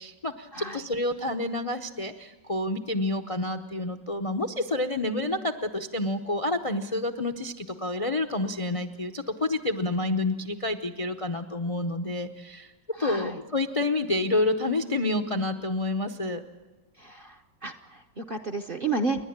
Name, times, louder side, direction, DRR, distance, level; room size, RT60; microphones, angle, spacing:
voice 1, 0.0-12.7 13.0-16.4, left 2 dB, 55° left, 7 dB, 0.3 m, -29 dB
voice 2, 12.9-13.4 17.0-19.3, right 3 dB, 45° right, 7 dB, 0.7 m, -32 dB
30.0 x 11.0 x 8.7 m, 1.2 s
omnidirectional pair, 1.9 m